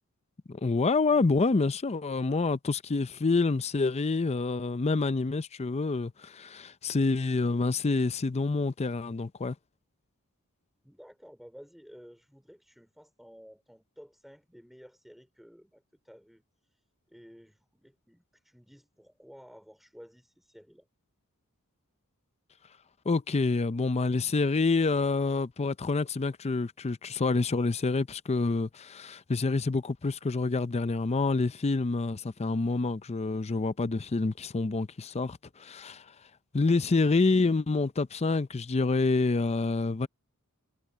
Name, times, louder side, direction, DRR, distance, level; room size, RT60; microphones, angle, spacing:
voice 1, 0.5-9.6 23.1-36.1 36.5-40.1, left 3 dB, 30° left, 0.5 m, -27 dB
voice 2, 10.8-20.9, equal, ahead, 3.0 m, -54 dB
head